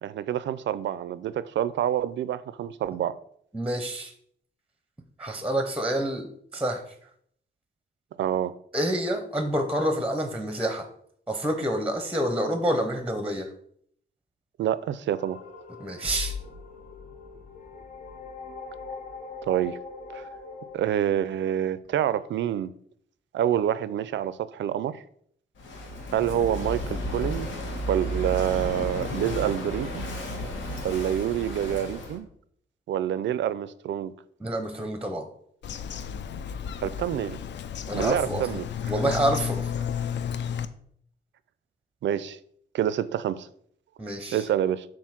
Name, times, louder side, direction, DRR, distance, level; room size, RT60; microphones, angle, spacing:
voice 1, 0.0-3.2 8.2-8.5 14.6-15.4 19.5-19.8 20.1-20.3 20.7-22.7 23.3-25.0 26.1-27.5 27.9-30.1 30.8-32.3 32.9-34.1 36.8-37.4 37.9-38.6 42.0-42.4 42.7-43.5 44.3-44.9, right 10 dB, 80° right, 0.4 m, -27 dB
voice 2, 3.5-4.1 5.2-6.3 6.5-6.8 8.7-10.9 11.3-13.5 15.8-16.4 34.4-35.2 37.9-39.7 44.0-44.5, right 1 dB, 5° right, 0.6 m, -28 dB
sound 1, 15.1-21.0, left 4 dB, 45° left, 1.0 m, -40 dB
Walk footsteps / Wind / Waves surf, 25.6-32.2, equal, 85° left, 1.2 m, -33 dB
Bird vocalization bird call bird song, 35.6-40.7, left 8 dB, 70° left, 0.4 m, -32 dB
7.4 x 2.6 x 5.8 m
wide cardioid pair, 135°, 19 cm